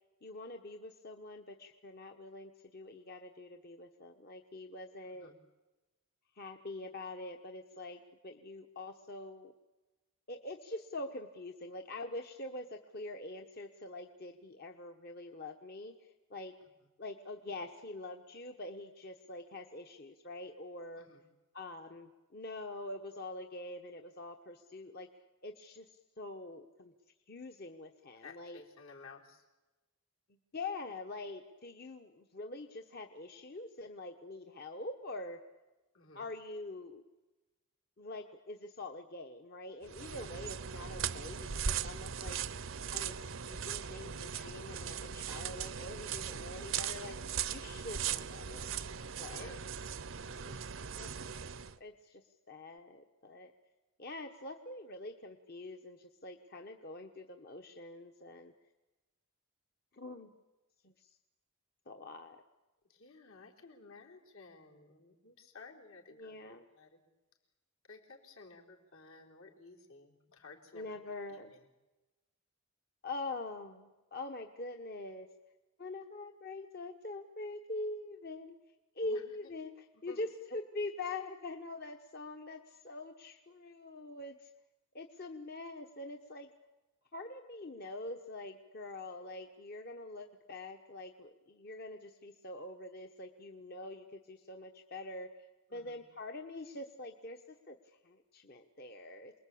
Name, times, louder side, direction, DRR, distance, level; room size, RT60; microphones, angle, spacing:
voice 1, 0.2-5.3 6.3-9.5 10.3-16.5 17.0-21.1 21.5-25.1 25.4-26.9 27.3-28.6 30.5-35.4 36.1-37.0 38.0-42.6 42.9-48.8 49.2-49.6 50.9-51.1 51.8-53.5 54.0-58.5 59.9-60.3 60.8-61.1 61.9-62.4 66.2-66.6 70.7-71.5 73.0-75.3 75.8-78.5 78.9-79.7 80.0-84.5 84.9-86.5 87.1-95.5 95.7-99.3, left 2 dB, 45° left, 5 dB, 1.2 m, -44 dB
voice 2, 5.0-5.4 16.6-16.9 21.0-21.2 28.2-29.4 35.9-36.3 49.4-49.7 50.2-50.6 62.8-66.4 66.7-67.0 67.9-71.6 79.0-79.5 79.9-80.2 95.7-96.0, left 3 dB, 75° left, 0 dB, 4.2 m, -55 dB
sound 1, 39.8-51.8, right 7 dB, 65° right, 0.8 m, -39 dB
28.0 x 21.0 x 8.6 m, 1.1 s
head